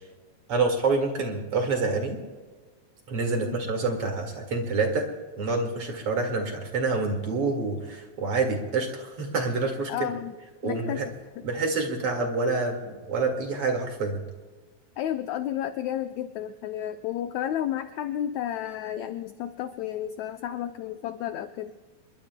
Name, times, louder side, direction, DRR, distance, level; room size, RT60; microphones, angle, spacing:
voice 1, 0.5-2.2 3.1-5.1 5.4-9.9 10.6-11.1 11.4-14.2, right 3 dB, 50° right, 3 dB, 2.5 m, -27 dB
voice 2, 9.9-10.4 10.6-11.5 15.0-21.7, left 11 dB, 80° left, 8 dB, 1.6 m, -32 dB
28.5 x 22.0 x 2.2 m, 1.4 s
omnidirectional pair, 3.9 m